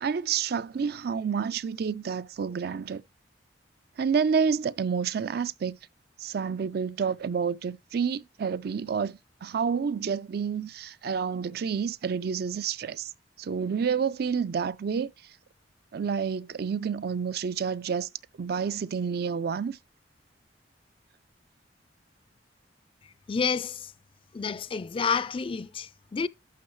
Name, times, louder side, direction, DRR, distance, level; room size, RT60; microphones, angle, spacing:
voice 1, 0.0-3.0 4.0-5.8 6.2-13.1 13.4-15.1 15.9-18.1 18.4-19.8, right 6 dB, 60° right, 0.4 m, -29 dB
voice 2, 23.3-23.9 24.3-26.3, left 5 dB, 30° left, 0.4 m, -29 dB
11.5 x 7.0 x 3.1 m
head